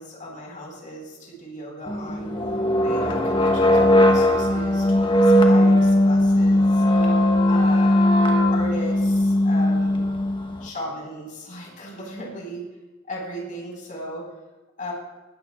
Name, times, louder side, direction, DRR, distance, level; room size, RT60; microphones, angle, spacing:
voice 1, 0.0-2.3 2.8-7.1 7.4-8.0 8.5-10.0 10.6-12.6 13.1-14.2 14.8-14.9, equal, 40° left, -1 dB, 4.8 m, -36 dB
sound 1, 1.9-10.6, left 1 dB, 25° left, 1.1 m, -18 dB
20.5 x 13.0 x 2.4 m, 1.2 s
head